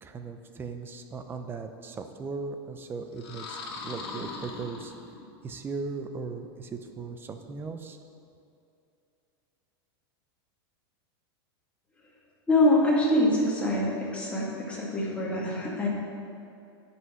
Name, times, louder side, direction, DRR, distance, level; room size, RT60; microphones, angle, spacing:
voice 1, 0.0-4.9 5.4-8.0, right 4 dB, 15° right, 7 dB, 0.6 m, -38 dB
sound 1, 3.1-5.4, left 4 dB, 85° left, 1.9 m, -40 dB
voice 2, 12.5-15.9, left 1 dB, 10° left, -5 dB, 2.1 m, -24 dB
9.3 x 5.7 x 6.1 m, 2.6 s
supercardioid pair, 145°, 13 cm